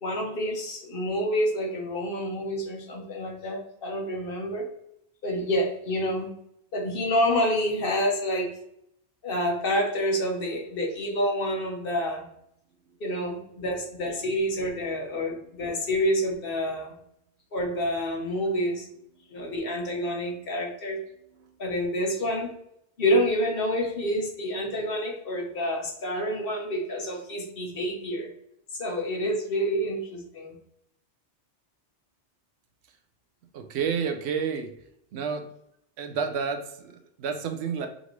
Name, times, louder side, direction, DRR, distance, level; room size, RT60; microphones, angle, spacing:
voice 1, 0.0-4.7 5.2-6.3 6.7-8.5 9.2-12.2 13.0-16.9 17.5-18.9 19.3-21.0 21.6-22.5 23.0-28.3 28.7-30.5, equal, 55° left, 1 dB, 1.0 m, -28 dB
voice 2, 33.5-34.7 35.1-35.5 36.0-37.9, right 6 dB, 70° right, 7 dB, 0.8 m, -30 dB
5.1 x 2.6 x 3.0 m, 0.75 s
omnidirectional pair, 1.2 m